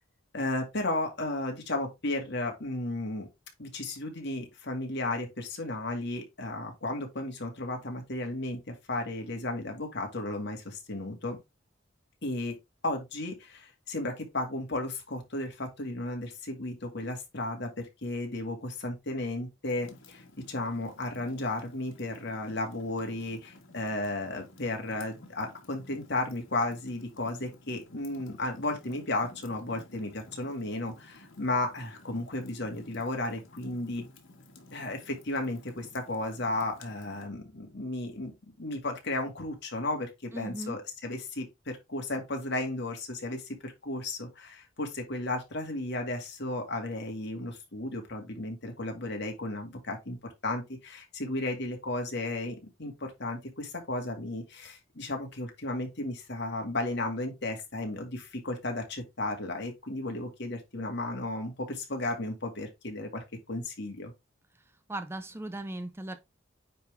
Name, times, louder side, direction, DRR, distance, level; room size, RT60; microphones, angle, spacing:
voice 1, 0.3-3.3 3.6-8.6 8.9-11.4 12.2-12.5 12.8-17.7 18.0-34.1 34.7-38.3 38.6-50.2 50.4-64.1, left 2 dB, 60° left, 2.2 m, -34 dB
Fire, 19.7-37.3, left 2 dB, 85° left, 1.8 m, -54 dB
voice 2, 40.3-40.8 64.9-66.2, right 1 dB, 15° right, 0.5 m, -37 dB
9.2 x 3.8 x 3.4 m
head